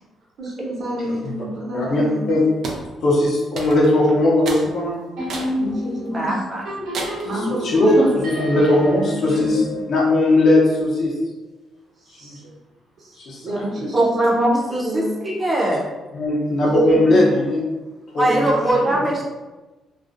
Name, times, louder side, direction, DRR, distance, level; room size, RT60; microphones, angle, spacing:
voice 1, 0.4-2.3 5.5-6.4 7.2-9.8 12.0-12.4 13.0-15.2 16.6-16.8 17.0-17.3 18.2-19.1, equal, 50° right, -4 dB, 0.8 m, -30 dB
voice 2, 1.7-2.4 3.0-5.0 7.6-9.6 9.9-11.1 12.2-12.4 13.2-13.5 16.1-17.6 18.1-18.5, left 1 dB, 50° left, -3 dB, 0.6 m, -18 dB
sound 1, 2.6-2.8 3.6-4.0 4.4-4.7 5.3-5.6 6.1-6.2 6.9-7.3, right 2 dB, 65° right, 0.4 m, -30 dB
sound 2, 5.2-10.9, equal, 80° right, 0.9 m, -31 dB
voice 3, 6.1-6.6 13.9-15.9 18.2-19.2, right 1 dB, 15° right, -3 dB, 0.5 m, -21 dB
2.4 x 2.0 x 2.5 m, 1.1 s
cardioid pair, 130°, 0 cm